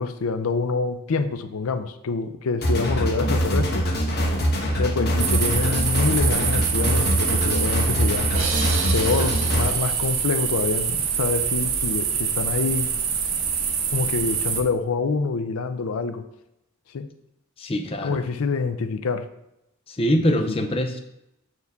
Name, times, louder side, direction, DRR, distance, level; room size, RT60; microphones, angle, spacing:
voice 1, 0.0-3.9 4.8-8.3 8.9-12.9 13.9-16.2 16.9-17.1 18.0-19.3 20.3-20.5, left 4 dB, 80° left, 10 dB, 0.5 m, -26 dB
sound 1, 2.6-9.7, equal, 45° left, 1.2 m, -23 dB
sound 2, 5.2-14.6, right 7 dB, 65° right, 0.9 m, -25 dB
sound 3, 8.3-11.1, right 5 dB, 85° right, 1.4 m, -34 dB
voice 2, 17.6-18.2 19.9-21.0, equal, 25° left, 6 dB, 0.5 m, -23 dB
8.0 x 4.5 x 3.5 m, 0.85 s
head